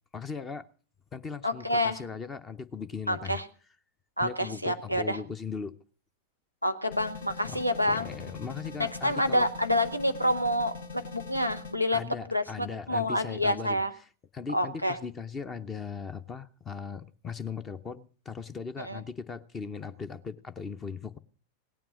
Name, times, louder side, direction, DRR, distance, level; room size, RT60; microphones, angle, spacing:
voice 1, 0.1-0.7 1.1-3.4 4.2-5.8 7.4-9.5 11.9-13.8 14.3-21.2, left 5 dB, 20° left, 13 dB, 0.8 m, -38 dB
voice 2, 1.4-2.0 3.1-3.4 4.2-5.2 6.6-8.1 8.8-12.0 12.3-13.9 14.5-15.0 18.8-19.0, left 1 dB, 90° left, 10 dB, 1.0 m, -28 dB
sound 1, 6.9-11.8, left 4 dB, 65° left, 1.4 m, -42 dB
17.5 x 9.2 x 6.3 m, 0.40 s
figure-of-eight pair, 90°, 0 cm